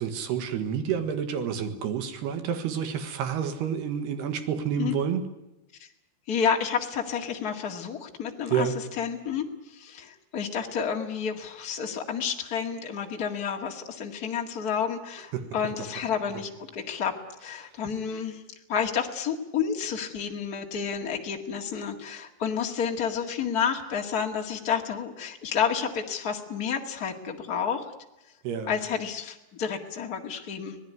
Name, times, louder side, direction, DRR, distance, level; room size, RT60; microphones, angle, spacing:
voice 1, 0.0-5.2 8.5-8.8 15.3-15.5 17.6-17.7 28.4-28.7, right 7 dB, 70° right, 8 dB, 3.6 m, -29 dB
voice 2, 6.3-8.7 9.0-17.1 17.4-18.4 18.7-27.8 28.7-30.8, left 7 dB, 45° left, 2 dB, 1.2 m, -30 dB
25.5 x 18.5 x 9.5 m, 0.92 s
omnidirectional pair, 5.0 m